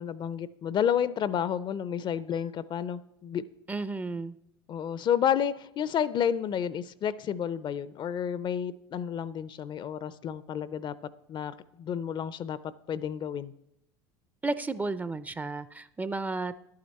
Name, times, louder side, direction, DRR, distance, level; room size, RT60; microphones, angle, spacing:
voice 1, 0.0-3.4 4.7-10.9 11.3-12.6 12.9-13.5, left 8 dB, 40° left, 17 dB, 0.5 m, -30 dB
voice 2, 3.7-4.4 14.4-16.5, right 3 dB, 15° right, 14 dB, 0.4 m, -33 dB
11.0 x 8.6 x 4.2 m, 0.79 s
hypercardioid pair, 80°, 13 cm